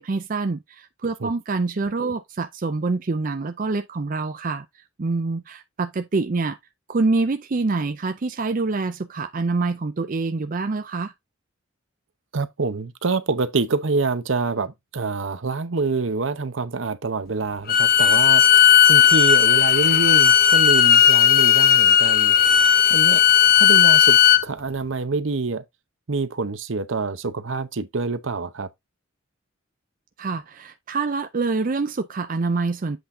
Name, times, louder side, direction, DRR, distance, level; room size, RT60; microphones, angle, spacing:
voice 1, 0.0-4.6 5.0-6.6 6.9-11.1 30.2-33.0, right 3 dB, 40° right, 0.5 m, -26 dB
voice 2, 12.3-22.4 22.9-25.6 26.1-28.7, right 3 dB, 70° right, 0.8 m, -26 dB
Bowed string instrument, 17.7-24.4, left 9 dB, 45° left, 0.7 m, -15 dB
8.0 x 4.0 x 3.7 m
head